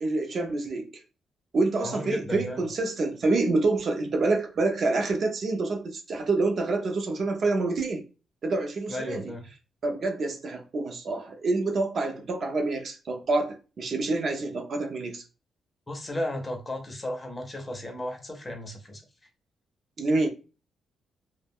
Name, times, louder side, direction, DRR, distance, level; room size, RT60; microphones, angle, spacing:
voice 1, 0.0-1.0 1.5-8.0 8.4-9.3 9.8-15.2 20.0-20.3, right 3 dB, 40° right, 0.4 m, -27 dB
voice 2, 1.8-2.6 8.9-9.4 15.9-19.0, left 1 dB, 15° left, 0.5 m, -34 dB
2.2 x 2.1 x 3.4 m
cardioid pair, 160°, 0 cm